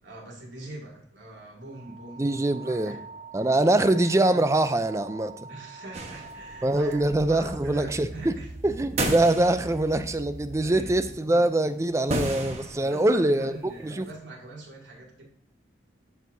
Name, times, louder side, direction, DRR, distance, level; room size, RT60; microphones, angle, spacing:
voice 1, 0.0-3.0 3.4-4.0 5.5-7.0 7.2-8.7 10.6-11.1 12.8-15.2, right 2 dB, 85° right, 2.6 m, -43 dB
sound 1, 1.6-11.1, right 3 dB, 60° right, 1.1 m, -44 dB
voice 2, 2.2-3.0 3.3-5.4 6.6-8.3 8.6-14.1, right 1 dB, 15° right, 0.4 m, -24 dB
sound 2, 5.9-10.1 10.4-11.2 11.6-11.7 11.9-13.9, right 1 dB, 35° right, 1.1 m, -34 dB
13.5 x 4.6 x 2.7 m
head